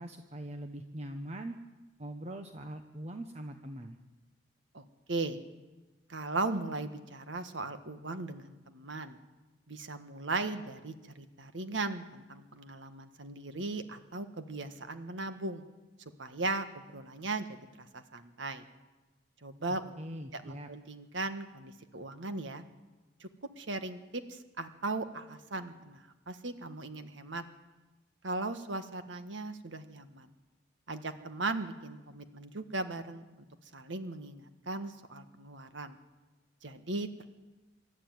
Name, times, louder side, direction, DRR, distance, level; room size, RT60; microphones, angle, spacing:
voice 1, 0.0-1.6 2.0-4.0 20.0-20.7, right 1 dB, 35° right, 6 dB, 1.0 m, -42 dB
voice 2, 4.7-5.4 6.1-9.2 9.7-15.6 16.2-18.6 19.4-19.9 20.3-22.6 23.2-23.3 23.6-27.4 28.2-30.3 30.9-33.2 33.7-36.0 36.6-37.3, right 3 dB, 80° right, 9 dB, 1.6 m, -38 dB
25.5 x 13.0 x 9.4 m, 1.2 s
head